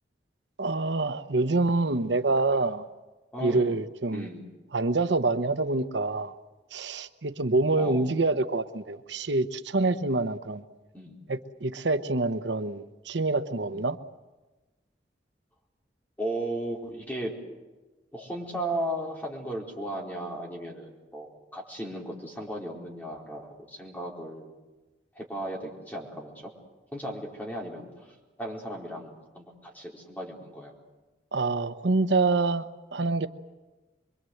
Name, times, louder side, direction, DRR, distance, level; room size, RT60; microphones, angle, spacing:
voice 1, 0.6-2.9 3.4-4.3 4.7-6.3 6.7-10.6 11.3-14.0 31.3-33.3, right 3 dB, 85° right, 11 dB, 0.9 m, -26 dB
voice 2, 3.3-3.6 4.1-4.5 7.8-8.1 10.9-11.2 13.7-13.8 16.2-17.3 18.1-24.5 25.1-26.5 26.9-28.1 28.4-30.7, right 1 dB, 10° left, -1 dB, 4.5 m, -36 dB
25.0 x 23.5 x 8.0 m, 1.2 s
head